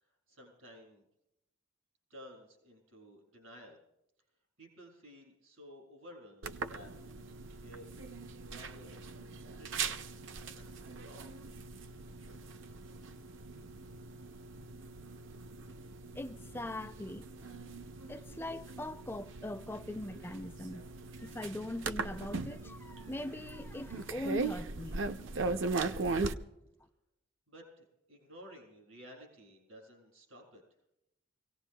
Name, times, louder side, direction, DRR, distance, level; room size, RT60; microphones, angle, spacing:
voice 1, 0.3-1.0 2.1-3.8 4.6-6.9 7.6-7.9 8.4-9.0 9.6-10.0 10.5-11.3 27.5-30.6, equal, 80° right, 6.7 m, -54 dB
sound 1, 6.4-26.3, right 3 dB, 65° right, 0.5 m, -40 dB
voice 2, 16.2-17.3 18.1-20.9 21.2-25.1, left 1 dB, 10° left, 0.4 m, -41 dB
26.0 x 17.5 x 2.2 m
head